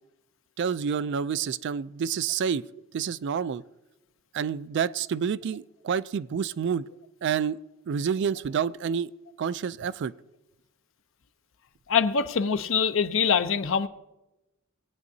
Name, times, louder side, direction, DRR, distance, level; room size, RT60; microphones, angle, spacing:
voice 1, 0.6-2.6 2.9-3.6 4.3-6.9 7.2-7.6 7.9-9.1 9.4-10.1, right 7 dB, 60° right, 17 dB, 0.3 m, -28 dB
voice 2, 11.9-13.9, left 6 dB, 70° left, 10 dB, 0.6 m, -24 dB
20.0 x 9.1 x 2.7 m, 0.98 s
head